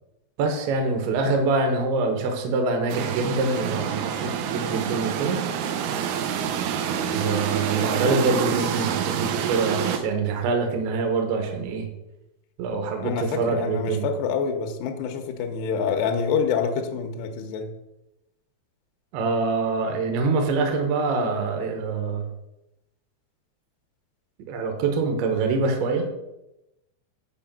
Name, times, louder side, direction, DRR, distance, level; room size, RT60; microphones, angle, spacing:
voice 1, 0.4-5.4 7.1-11.9 12.6-14.0 19.1-22.3 24.5-26.0, right 4 dB, 70° right, 3 dB, 3.1 m, -25 dB
sound 1, 2.9-10.0, right 8 dB, 90° right, 3.6 m, -27 dB
voice 2, 13.0-17.7, left 6 dB, 75° left, 4 dB, 2.5 m, -26 dB
8.9 x 4.9 x 7.4 m, 0.92 s
omnidirectional pair, 5.9 m